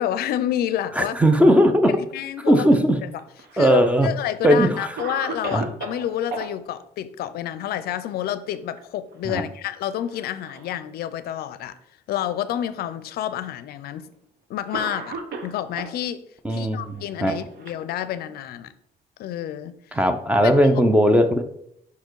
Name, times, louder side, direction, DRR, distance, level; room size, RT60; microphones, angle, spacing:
voice 1, 0.0-1.2 1.9-2.7 3.0-3.1 3.5-11.8 12.1-14.1 14.5-16.2 16.5-18.7 19.2-20.0 20.4-20.5, left 11 dB, 65° left, 13 dB, 0.5 m, -29 dB
voice 2, 1.0-1.9 2.5-3.0 3.6-4.1 4.4-4.9 5.5-5.7 9.3-9.4 16.4-17.3 19.9-21.4, equal, 10° right, 7 dB, 0.6 m, -18 dB
Cough, 3.1-4.0 4.5-4.6 5.0-6.5 8.4-8.8 9.1-9.2 10.0-10.7 11.5-11.6 12.7-12.8 13.9-14.1 14.7-16.0 16.9-18.4, right 4 dB, 70° right, 1.0 m, -36 dB
5.6 x 4.4 x 4.6 m, 0.73 s
cardioid pair, 110°, 17 cm